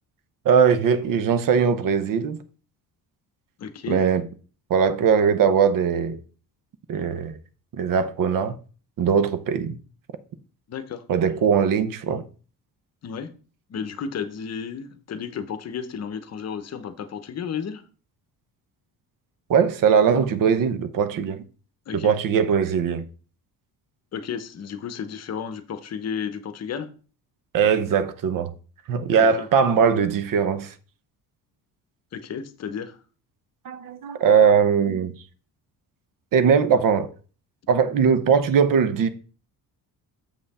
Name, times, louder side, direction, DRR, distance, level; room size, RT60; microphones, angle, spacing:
voice 1, 0.4-2.4 3.9-4.2 4.7-6.2 6.9-7.4 7.8-8.5 9.0-9.8 11.1-12.2 19.5-21.4 21.9-23.1 27.5-28.5 28.9-30.7 33.6-35.1 36.3-37.1 37.7-39.1, right 6 dB, 60° right, 0.9 m, -20 dB
voice 2, 3.6-4.1 10.7-11.0 13.0-13.3 13.7-17.8 21.9-22.1 24.1-26.9 29.2-29.5 32.1-33.0, left 7 dB, 45° left, 0.9 m, -33 dB
7.3 x 5.6 x 4.2 m
cardioid pair, 135°, 36 cm